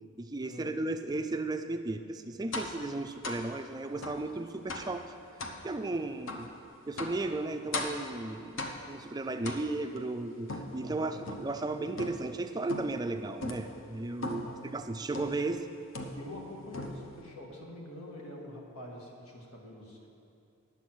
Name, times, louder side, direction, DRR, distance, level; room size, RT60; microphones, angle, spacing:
voice 1, 0.2-5.1 5.4-6.5 6.9-14.4 14.7-15.7, right 2 dB, 15° right, 7 dB, 0.3 m, -35 dB
sound 1, 2.5-2.8 3.2-3.5 4.0-4.2 4.7-5.0 5.4-5.6 6.3-6.5 7.0-7.3 7.7-8.1 8.6-9.0 9.4-10.0 10.5-11.6 12.0-12.4 12.7-13.1 13.4-13.7 14.2-14.6 15.1-15.5 15.9-16.4 16.7-17.2, left 2 dB, 60° left, 0.8 m, -38 dB
voice 2, 9.3-9.6 10.8-11.2 14.2-14.8 16.1-20.1, left 1 dB, 75° left, -1 dB, 1.7 m, -46 dB
9.9 x 7.2 x 6.1 m, 2.7 s
head